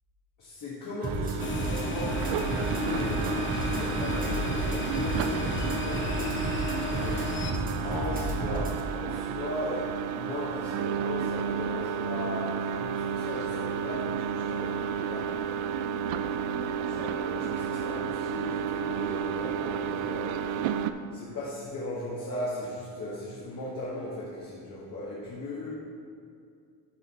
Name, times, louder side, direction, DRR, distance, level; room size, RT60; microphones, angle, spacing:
voice 1, 0.4-6.5 6.9-7.3 7.8-15.4 16.8-20.5 21.1-25.7, left 1 dB, 45° left, -6 dB, 1.4 m, -37 dB
sound 1, 1.0-8.8, right 1 dB, 20° right, 1.0 m, -33 dB
sound 2, 1.0-20.9, right 8 dB, 80° right, 0.5 m, -32 dB
sound 3, 1.4-7.5, left 4 dB, 25° left, 0.7 m, -34 dB
11.5 x 3.9 x 4.2 m, 2.4 s
cardioid pair, 120°, 45 cm